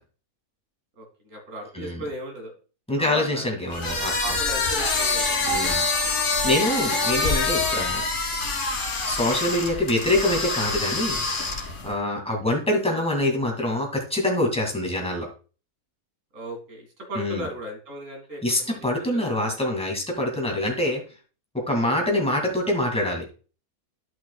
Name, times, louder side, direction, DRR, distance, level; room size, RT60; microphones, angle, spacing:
voice 1, 1.0-2.5 3.0-3.4 4.2-5.7 12.9-13.3 16.3-18.8 19.1-19.5, right 1 dB, 55° right, 2 dB, 2.4 m, -36 dB
voice 2, 2.9-4.2 5.4-8.0 9.1-11.2 11.8-15.3 17.1-17.5 18.4-21.0 21.5-23.2, left 1 dB, 5° left, 0 dB, 1.9 m, -25 dB
sound 1, 3.7-11.9, left 3 dB, 65° left, 2.3 m, -25 dB
12.0 x 5.8 x 2.2 m, 0.36 s
omnidirectional pair, 1.6 m